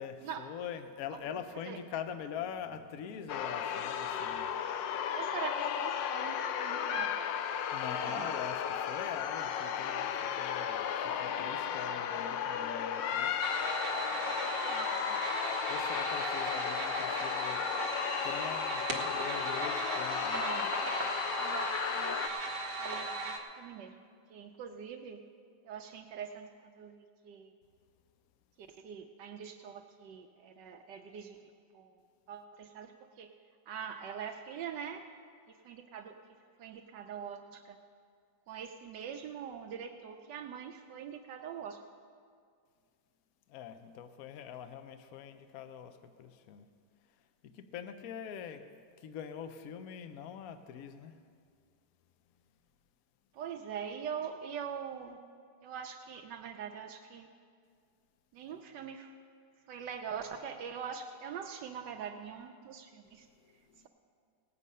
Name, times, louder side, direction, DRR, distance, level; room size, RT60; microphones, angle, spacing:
voice 1, 0.0-4.7 7.7-13.3 15.7-17.6 18.2-20.4 43.5-46.7 47.5-48.6 49.0-51.2 63.4-63.9, left 8 dB, 65° left, 9 dB, 1.0 m, -44 dB
sound 1, 3.3-22.3, left 8 dB, 90° left, 1.4 m, -34 dB
voice 2, 5.1-7.1 8.0-8.3 14.1-14.3 14.6-15.2 20.2-20.8 21.4-22.2 22.8-24.0 24.3-25.2 25.6-27.5 28.6-31.4 31.7-32.0 32.3-33.3 33.7-35.1 35.5-36.2 36.6-37.8 38.5-41.8 53.3-55.2 55.6-57.3 58.3-59.1 59.7-63.3, right 7 dB, 80° right, 5 dB, 1.3 m, -43 dB
sound 2, 13.4-23.4, right 3 dB, 55° right, 1.6 m, -37 dB
18.0 x 8.4 x 5.4 m, 2.2 s
omnidirectional pair, 2.0 m